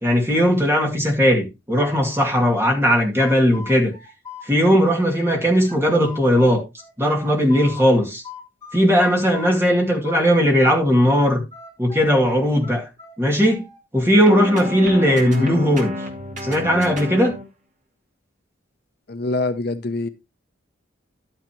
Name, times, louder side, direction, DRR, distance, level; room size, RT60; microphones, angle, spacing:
voice 1, 0.0-3.9 4.4-6.6 7.0-8.2 8.7-11.4 11.8-12.9 13.2-13.6 13.9-15.9 16.4-17.3, equal, 10° right, 2.3 m, -18 dB
sound 1, 2.5-5.0 5.3-7.8 8.2-10.8 11.1-13.8, left 5 dB, 15° left, 6.2 m, -40 dB
sound 2, 14.2-17.5, left 1 dB, 35° right, 2.4 m, -30 dB
voice 2, 15.3-15.6 19.1-20.1, left 2 dB, 50° left, 0.7 m, -25 dB
11.5 x 8.9 x 3.0 m
head